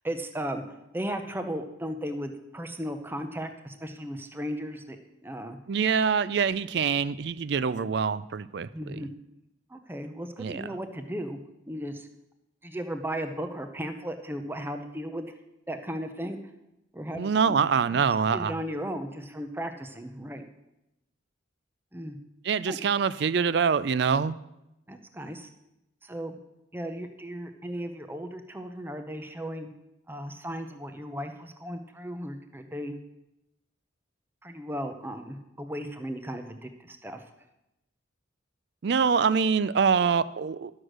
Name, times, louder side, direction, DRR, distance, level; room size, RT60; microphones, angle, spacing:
voice 1, 0.0-0.6 0.9-5.0 5.2-5.6 8.7-9.1 9.7-11.4 11.7-12.1 12.6-15.3 15.7-16.4 16.9-17.6 18.3-20.5 21.9-22.2 22.7-22.8 24.9-25.5 26.0-26.4 26.7-29.7 30.1-33.0 34.4-37.2, equal, 10° right, 7 dB, 0.7 m, -36 dB
voice 2, 5.7-9.0 10.4-10.6 17.2-18.5 22.4-24.3 38.8-40.7, right 6 dB, 55° right, 17 dB, 0.4 m, -25 dB
12.0 x 6.4 x 6.3 m, 0.89 s
head